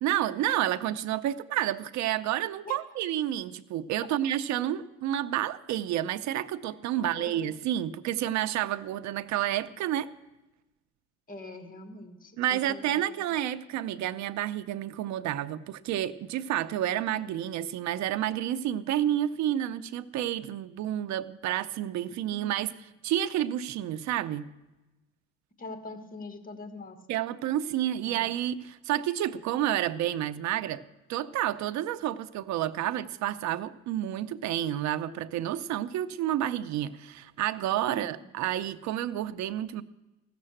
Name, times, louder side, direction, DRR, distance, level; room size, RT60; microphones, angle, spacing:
voice 1, 0.0-10.1 12.4-22.7 23.0-24.5 27.1-30.8 31.1-39.8, right 12 dB, 70° right, 12 dB, 0.6 m, -30 dB
voice 2, 7.0-7.6 11.3-12.8 13.2-13.3 22.3-22.5 25.6-27.0 28.1-28.3 37.8-38.1, left 2 dB, 30° left, 7 dB, 1.6 m, -43 dB
15.0 x 6.7 x 7.7 m, 1.0 s
cardioid pair, 105°, 29 cm